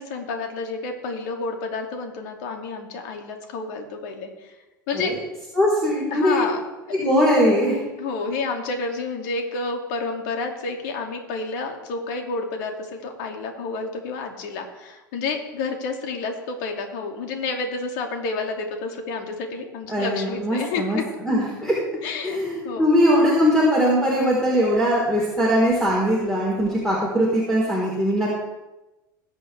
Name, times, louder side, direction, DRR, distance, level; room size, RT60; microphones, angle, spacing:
voice 1, 0.0-4.5 4.9-5.1 6.1-7.0 8.0-21.0 22.0-22.4 22.6-22.9, left 4 dB, 60° left, 3 dB, 2.7 m, -30 dB
voice 2, 5.6-6.4 6.9-7.8 19.9-21.0 21.2-21.7 22.2-28.3, equal, 5° left, -5 dB, 4.3 m, -20 dB
21.5 x 8.4 x 3.5 m, 1.0 s
hypercardioid pair, 85°, 11 cm